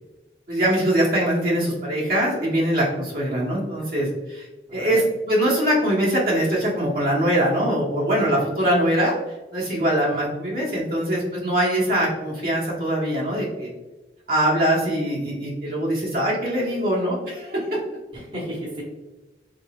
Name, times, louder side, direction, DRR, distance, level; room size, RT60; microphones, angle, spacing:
voice 1, 0.5-4.5 4.7-13.7 14.3-17.7, right 1 dB, 55° right, -5 dB, 1.1 m, -22 dB
voice 2, 4.7-5.0 8.3-8.4 18.1-18.8, equal, 30° right, -4 dB, 1.0 m, -33 dB
3.8 x 3.8 x 2.3 m, 1.1 s
head